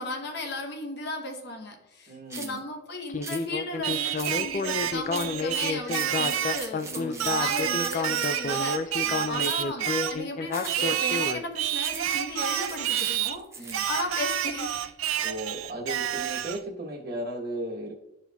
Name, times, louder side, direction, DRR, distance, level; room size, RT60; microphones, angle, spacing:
voice 1, 0.0-14.8, left 2 dB, 55° left, 3 dB, 0.9 m, -36 dB
voice 2, 2.1-2.6 6.8-7.3 9.0-9.3 13.6-13.9 15.2-17.9, right 1 dB, 50° right, 0 dB, 1.1 m, -36 dB
sound 1, 2.3-2.6 3.2-3.4 4.2-4.6 5.1-5.4 5.8-8.5 9.4-9.7 10.5-10.9 11.8-12.2 12.6-14.0, right 4 dB, 15° right, 0.6 m, -40 dB
Speech synthesizer, 3.1-11.4, left 4 dB, 40° left, 0.3 m, -30 dB
Singing, 3.8-6.7 7.2-10.2 10.7-13.4 13.7-16.6, right 10 dB, 90° right, 0.4 m, -29 dB
11.0 x 4.3 x 2.3 m, 0.88 s
head